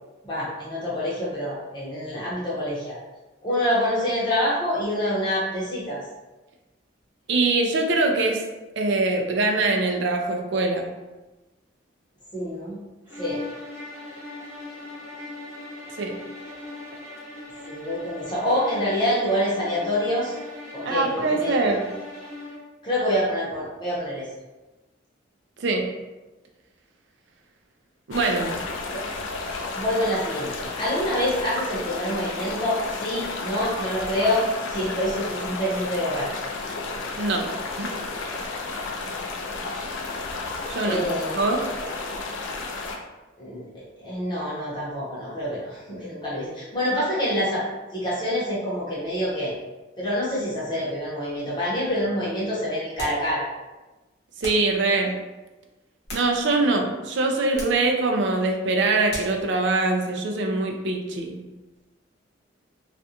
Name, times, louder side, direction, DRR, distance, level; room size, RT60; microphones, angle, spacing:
voice 1, 0.2-3.0 3.4-6.0 12.3-12.8 13.2-13.4 17.7-20.4 20.7-21.6 22.8-24.3 28.9-29.0 29.7-30.5 30.8-36.3 40.8-41.5 43.4-47.6 47.9-49.5 50.0-53.4, equal, 20° left, -8 dB, 0.8 m, -26 dB
voice 2, 7.3-8.4 8.8-10.9 15.9-16.1 20.8-21.9 25.6-25.9 28.1-28.6 37.2-37.5 37.8-37.9 40.7-41.0 41.3-41.6 54.4-55.2 56.1-61.4, right 3 dB, 60° right, 2 dB, 0.4 m, -23 dB
sound 1, 13.0-22.7, left 2 dB, 15° right, 0.8 m, -39 dB
sound 2, 28.1-43.0, left 3 dB, 75° left, 0.4 m, -32 dB
sound 3, 52.9-53.3 54.4-54.7 55.8-56.7 57.5-57.9 59.1-59.4, left 1 dB, 50° left, 0.9 m, -37 dB
2.4 x 2.2 x 2.8 m, 1.1 s
head